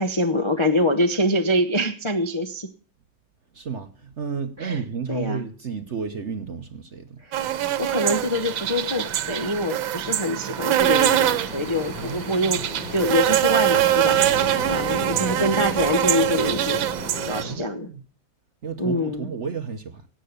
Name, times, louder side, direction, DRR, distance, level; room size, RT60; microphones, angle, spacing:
voice 1, 0.0-2.7 4.6-4.8 5.1-5.4 7.2-12.6 12.9-16.9 17.2-17.9 18.8-19.3, left 1 dB, 30° left, 0.5 m, -25 dB
voice 2, 3.5-7.2 12.0-12.6 17.4-18.0 18.6-20.1, right 6 dB, 50° right, 1.0 m, -32 dB
sound 1, 7.3-17.4, right 12 dB, 85° right, 1.6 m, -23 dB
Ocean, 10.8-17.6, left 2 dB, 90° left, 4.0 m, -34 dB
17.0 x 7.7 x 6.7 m
omnidirectional pair, 2.1 m